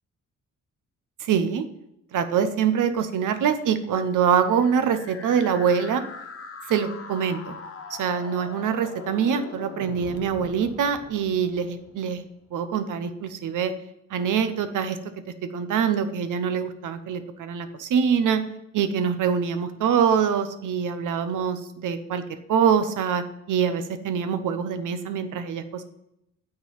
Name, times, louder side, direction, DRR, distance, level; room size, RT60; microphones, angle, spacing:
voice 1, 1.2-1.7 2.1-6.0 6.7-7.6 7.9-12.2 12.5-13.7 14.1-15.0 15.5-18.4 18.7-22.2 22.5-25.8, right 7 dB, 90° right, 10 dB, 0.8 m, -24 dB
sound 1, 4.4-12.4, left 4 dB, 45° left, 1.1 m, -41 dB
8.8 x 3.9 x 7.0 m, 0.81 s
cardioid pair, 105°, 30 cm